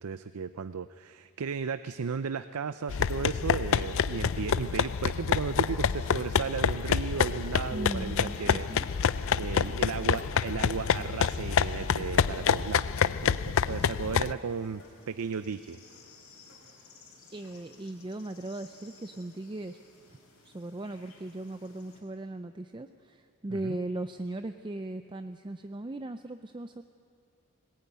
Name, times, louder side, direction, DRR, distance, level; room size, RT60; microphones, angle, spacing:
voice 1, 0.0-8.7 9.3-15.8 23.5-23.8, right 6 dB, 75° right, 12 dB, 0.5 m, -35 dB
sound 1, 2.9-14.3, left 7 dB, 60° left, 0.5 m, -27 dB
sound 2, 3.3-22.0, left 3 dB, 80° left, 4.9 m, -58 dB
sound 3, 6.0-12.4, equal, 35° left, 3.8 m, -52 dB
voice 2, 7.7-8.9 17.3-19.8 20.1-20.2 20.4-26.8, right 2 dB, 20° right, 8 dB, 0.5 m, -38 dB
20.0 x 19.5 x 9.2 m, 2.4 s
head